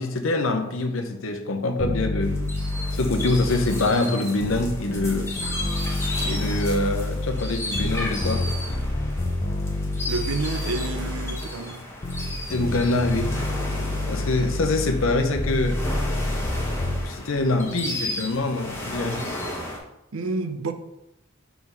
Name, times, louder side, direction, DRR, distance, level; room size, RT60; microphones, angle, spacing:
voice 1, 0.0-2.4 2.9-5.4 6.3-8.5 12.5-13.4 14.1-15.8 17.0-19.2, left 2 dB, 75° left, 0.7 m, -24 dB
sound 1, 1.8-4.0 4.4-11.5 12.0-17.0, left 2 dB, 30° left, 0.5 m, -28 dB
sound 2, 2.2-19.8, left 1 dB, 10° left, 1.1 m, -34 dB
voice 2, 10.1-11.8 20.1-20.7, right 3 dB, 85° right, 0.6 m, -29 dB
4.6 x 3.9 x 5.5 m
head